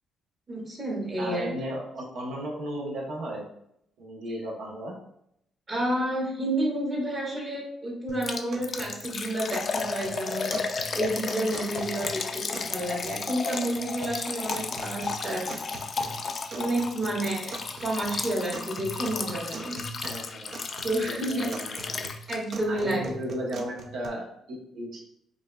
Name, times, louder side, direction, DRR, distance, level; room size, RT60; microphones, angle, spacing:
voice 1, 0.5-1.5 5.7-10.5 10.9-15.5 16.5-19.8 20.8-21.5 22.3-23.1, right 1 dB, 35° right, -4 dB, 1.3 m, -30 dB
voice 2, 1.2-3.5 4.0-4.9 20.0-20.5 21.1-22.0 22.7-25.0, right 1 dB, 80° right, -1 dB, 0.8 m, -35 dB
sound 1, 8.1-24.1, right 3 dB, 60° right, 0.5 m, -43 dB
Liquid, 8.2-22.6 22.9-23.0 23.5-23.6, left 4 dB, 45° left, 0.4 m, -34 dB
5.0 x 2.5 x 2.2 m, 0.75 s
cardioid pair, 90°, 0 cm